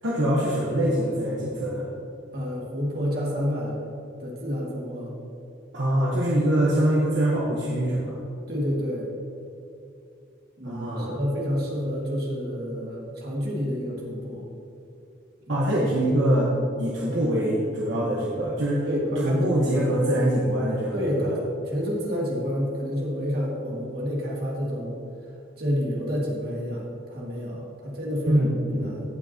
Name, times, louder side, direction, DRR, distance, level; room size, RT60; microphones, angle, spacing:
voice 1, 0.0-1.9 5.7-8.2 10.6-11.2 15.5-18.9 19.2-21.4 28.3-29.0, right 1 dB, 70° right, -5 dB, 1.1 m, -24 dB
voice 2, 2.3-3.8 4.2-5.1 8.5-9.1 10.6-14.4 18.9-19.8 20.9-21.4 21.7-25.0 25.6-29.0, equal, 50° right, -4 dB, 2.1 m, -29 dB
16.5 x 6.0 x 2.9 m, 2.6 s
head